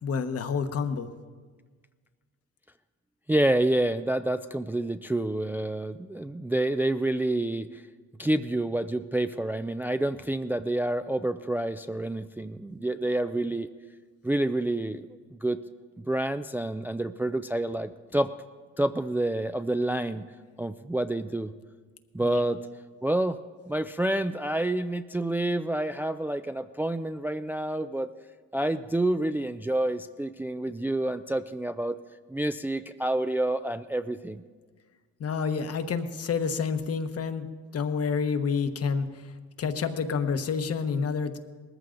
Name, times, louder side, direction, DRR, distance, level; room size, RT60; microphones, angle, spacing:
voice 1, 0.0-1.1 22.2-22.4 35.2-39.3 39.6-41.4, left 5 dB, 50° left, 8 dB, 1.1 m, -29 dB
voice 2, 3.3-7.8 8.2-13.7 14.2-15.6 16.0-18.3 18.8-20.3 20.6-21.5 22.1-22.7 23.0-23.4 23.7-28.1 28.5-32.0 32.3-34.4, right 1 dB, 5° right, 9 dB, 0.4 m, -28 dB
19.5 x 14.0 x 3.9 m, 1.5 s
cardioid pair, 90°, 30 cm